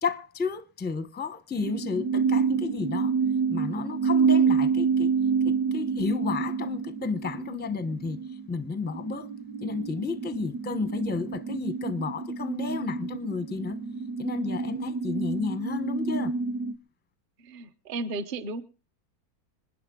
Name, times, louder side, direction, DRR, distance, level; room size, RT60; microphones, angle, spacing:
voice 1, 0.0-3.1 3.5-5.1 5.4-9.3 9.6-13.8 14.2-16.3, left 5 dB, 10° left, 0.6 m, -32 dB
sound 1, 1.6-16.8, right 5 dB, 65° right, 1.4 m, -28 dB
voice 2, 17.4-18.7, right 2 dB, 40° right, 0.9 m, -34 dB
27.0 x 10.0 x 3.7 m
omnidirectional pair, 1.7 m